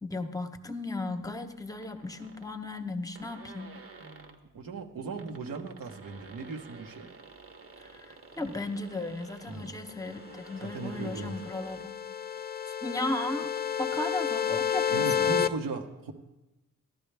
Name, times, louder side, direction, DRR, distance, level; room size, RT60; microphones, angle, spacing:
voice 1, 0.0-3.7 7.8-12.0 12.7-13.5 13.8-15.3, left 2 dB, 10° left, 7 dB, 0.9 m, -36 dB
sound 1, 1.8-2.5 2.9-3.0 3.1-4.4 5.0-11.9, right 4 dB, 45° right, 1.1 m, -51 dB
voice 2, 4.0-7.1 9.5-9.8 10.7-11.3 14.9-16.1, right 4 dB, 80° right, 2 dB, 1.3 m, -38 dB
sound 2, 10.5-15.5, left 9 dB, 30° left, 0.4 m, -30 dB
14.0 x 12.0 x 3.4 m, 1.0 s
cardioid pair, 90°, 33 cm